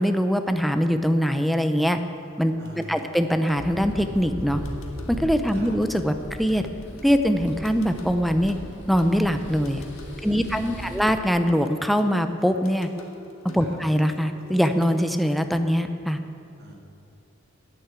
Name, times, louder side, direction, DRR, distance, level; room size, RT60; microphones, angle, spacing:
voice 1, 0.0-2.0 2.4-4.6 5.1-6.6 7.0-8.5 8.9-9.9 10.2-12.9 13.5-16.2, equal, ahead, 7 dB, 0.6 m, -22 dB
sound 1, 2.0-15.4, left 3 dB, 85° left, 1.5 m, -46 dB
voice 2, 2.5-3.1 5.5-5.8 10.3-11.0 13.6-13.8 16.6-16.7, equal, 55° right, -1 dB, 2.7 m, -43 dB
sound 2, 3.5-11.0, equal, 55° left, 2.9 m, -38 dB
10.5 x 9.8 x 8.1 m, 2.7 s
head